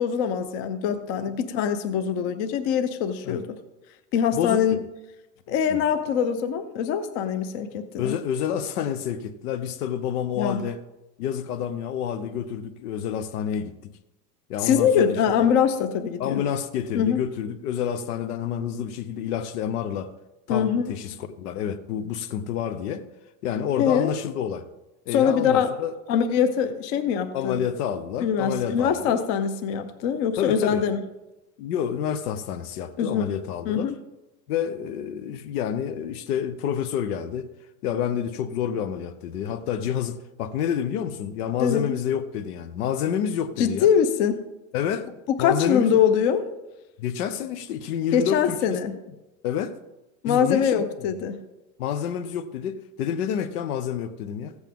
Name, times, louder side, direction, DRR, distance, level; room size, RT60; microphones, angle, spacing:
voice 1, 0.0-3.6 4.1-4.8 5.5-8.2 10.4-10.6 14.6-16.4 16.9-17.2 20.5-20.9 23.8-24.1 25.1-25.7 26.1-27.6 28.2-31.0 33.0-33.3 33.7-34.0 41.6-42.0 43.6-44.4 45.3-46.4 48.1-48.9 50.2-51.4, left 8 dB, 40° left, 0.6 m, -23 dB
voice 2, 4.3-4.8 5.7-5.8 8.0-10.8 11.2-13.8 14.5-15.2 16.2-20.1 20.5-23.0 23.4-24.6 25.1-25.9 27.3-29.2 30.4-30.8 31.6-33.9 34.5-37.5 37.8-43.9 44.7-45.1 45.4-46.0 47.0-48.9 49.4-49.7 50.3-50.8 51.8-54.5, left 8 dB, 90° left, 1.0 m, -28 dB
15.0 x 8.1 x 3.6 m
supercardioid pair, 170°, 44 cm